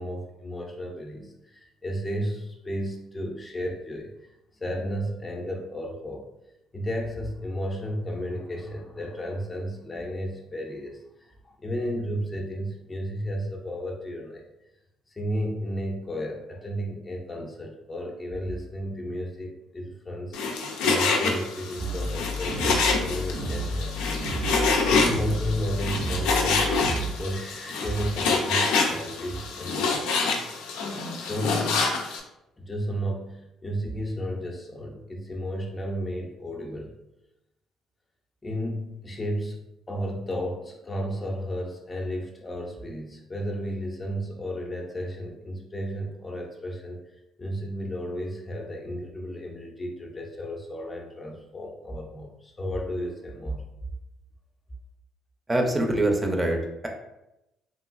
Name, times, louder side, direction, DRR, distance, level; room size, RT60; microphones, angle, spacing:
voice 1, 0.0-4.1 4.6-6.3 6.7-14.4 15.1-20.4 20.8-24.2 24.8-26.7 27.2-30.1 31.2-31.9 32.6-36.9 38.4-47.0 47.4-53.7, equal, 25° left, 1 dB, 0.5 m, -33 dB
Frying (food), 20.3-32.2, left 4 dB, 90° left, 0.4 m, -26 dB
sound 1, 21.8-27.1, equal, 75° right, 0.9 m, -31 dB
voice 2, 55.5-56.9, right 1 dB, 20° right, 2 dB, 0.5 m, -24 dB
3.0 x 2.4 x 2.4 m, 0.90 s
supercardioid pair, 80°, 0 cm